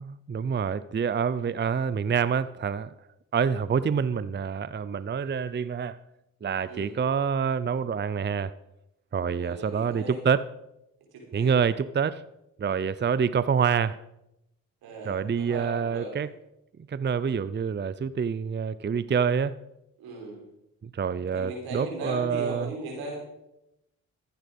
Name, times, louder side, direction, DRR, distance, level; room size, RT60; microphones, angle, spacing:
voice 1, 0.0-2.9 3.3-6.0 6.4-8.5 9.1-10.4 11.3-12.2 12.6-14.0 15.1-16.3 16.9-19.5 20.8-22.7, right 6 dB, 30° right, 0.6 m, -27 dB
voice 2, 9.3-10.2 11.1-11.5 13.0-13.2 14.8-16.1 20.0-20.4 21.3-23.2, right 2 dB, 90° right, 4.8 m, -38 dB
14.0 x 10.5 x 5.3 m
supercardioid pair, 50°, 36 cm